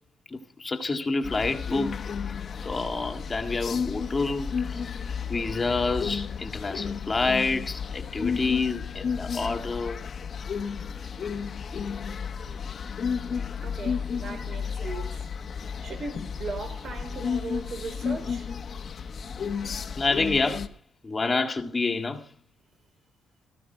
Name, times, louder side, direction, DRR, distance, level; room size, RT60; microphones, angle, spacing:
voice 1, 0.3-2.0 2.7-4.9 5.3-10.0 20.0-20.7 21.0-22.2, left 3 dB, 20° left, 1.9 m, -28 dB
sound 1, 1.2-20.7, left 6 dB, 35° left, 1.3 m, -32 dB
voice 2, 13.6-15.2 15.8-18.5, right 3 dB, 45° right, 4.4 m, -38 dB
19.0 x 14.5 x 4.6 m
cardioid pair, 155°, 0 cm